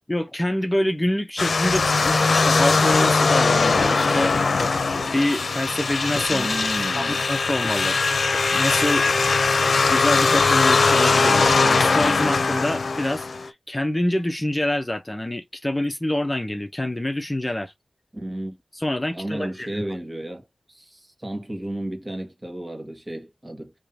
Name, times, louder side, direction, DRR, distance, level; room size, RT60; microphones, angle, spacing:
voice 1, 0.1-4.6 5.1-6.7 7.0-8.0 8.5-9.1 9.9-17.7 18.7-19.8, left 1 dB, 20° left, 0.7 m, -26 dB
sound 1, 1.4-13.5, left 4 dB, 75° left, 0.6 m, -20 dB
voice 2, 6.3-7.2 18.1-18.6 19.1-23.7, right 1 dB, 30° right, 1.6 m, -33 dB
3.7 x 3.0 x 2.8 m
cardioid pair, 55°, 0 cm